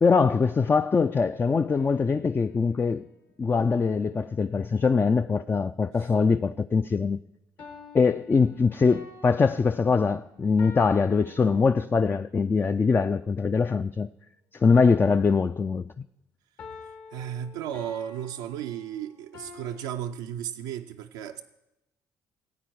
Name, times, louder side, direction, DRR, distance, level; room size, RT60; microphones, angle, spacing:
voice 1, 0.0-3.0 3.4-7.2 7.9-14.1 14.5-16.0, left 5 dB, 25° left, 0.3 m, -23 dB
sound 1, 1.7-3.1 7.6-12.1 16.6-19.9, left 5 dB, 65° left, 1.7 m, -48 dB
voice 2, 17.1-21.4, right 10 dB, 80° right, 0.4 m, -34 dB
15.5 x 8.4 x 4.6 m
hypercardioid pair, 55°, 9 cm